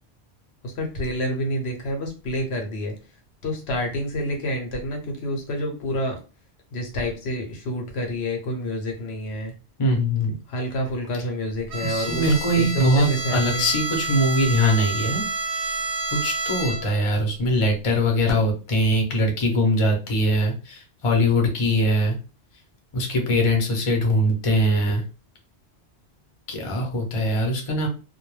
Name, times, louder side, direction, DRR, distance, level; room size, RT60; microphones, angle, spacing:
voice 1, 0.6-2.9 3.4-6.2 6.7-9.5 10.5-13.7, equal, 70° left, 3 dB, 0.9 m, -28 dB
voice 2, 9.8-10.3 11.8-13.1 13.3-15.8 16.1-22.2 22.9-25.0 26.5-27.9, equal, 35° left, 1 dB, 0.6 m, -22 dB
Bowed string instrument, 11.7-17.1, right 3 dB, 70° right, 0.8 m, -29 dB
2.2 x 2.1 x 3.0 m, 0.33 s
omnidirectional pair, 1.1 m